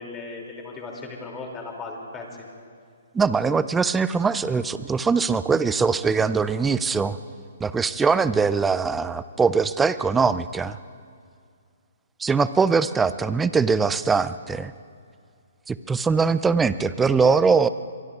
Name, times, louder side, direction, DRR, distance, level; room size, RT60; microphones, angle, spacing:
voice 1, 0.0-2.4, left 3 dB, 15° left, 0 dB, 2.7 m, -36 dB
voice 2, 3.1-7.2 7.6-10.8 12.2-14.7 15.7-17.7, right 5 dB, 10° right, 14 dB, 0.4 m, -22 dB
24.0 x 23.5 x 2.4 m, 2.2 s
hypercardioid pair, 155°, 0 cm